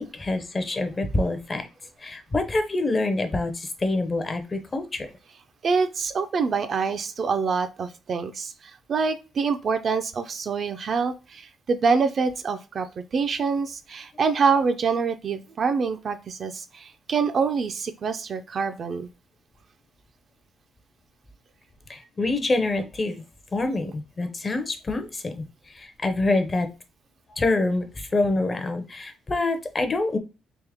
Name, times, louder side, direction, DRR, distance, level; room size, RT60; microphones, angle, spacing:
voice 1, 0.0-1.7 2.0-5.1 21.9-23.2 23.5-26.7 27.4-30.2, left 2 dB, 25° left, 7 dB, 0.5 m, -26 dB
voice 2, 5.6-8.5 8.9-19.1, right 5 dB, 45° right, 9 dB, 0.4 m, -25 dB
3.5 x 2.8 x 3.4 m, 0.30 s
cardioid pair, 140°, 0 cm